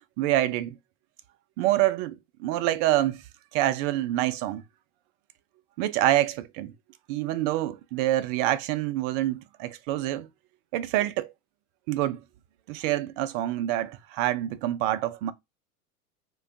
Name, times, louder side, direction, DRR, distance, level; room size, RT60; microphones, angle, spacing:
voice 1, 0.2-0.7 1.6-3.2 3.5-4.6 5.8-6.7 7.1-10.3 10.7-11.3 11.9-12.2 12.7-15.3, right 14 dB, 40° right, 0.4 m, -26 dB
2.5 x 2.2 x 3.6 m
figure-of-eight pair, 80°, 44 cm